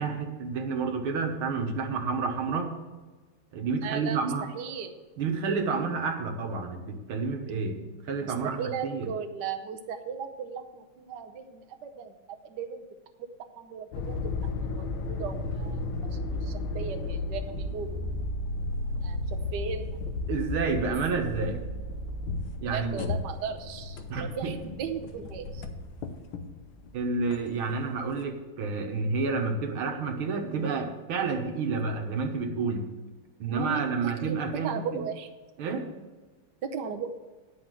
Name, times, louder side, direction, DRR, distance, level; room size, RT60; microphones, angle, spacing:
voice 1, 0.0-2.7 3.5-4.5 5.2-9.1 20.3-21.6 22.6-23.1 24.1-24.6 26.9-32.9 33.4-35.0 35.6-35.9, right 4 dB, 85° right, 4 dB, 2.0 m, -30 dB
voice 2, 3.8-4.2 4.5-4.9 8.2-12.1 12.4-12.8 13.6-18.0 19.0-19.2 19.5-20.0 22.6-25.6 33.5-33.8 34.3-34.4 34.6-35.3 36.6-37.1, right 6 dB, 65° right, 4 dB, 1.3 m, -37 dB
sound 1, 13.9-28.0, left 2 dB, 80° left, 1.7 m, -34 dB
10.0 x 5.7 x 7.5 m, 1.3 s
omnidirectional pair, 2.2 m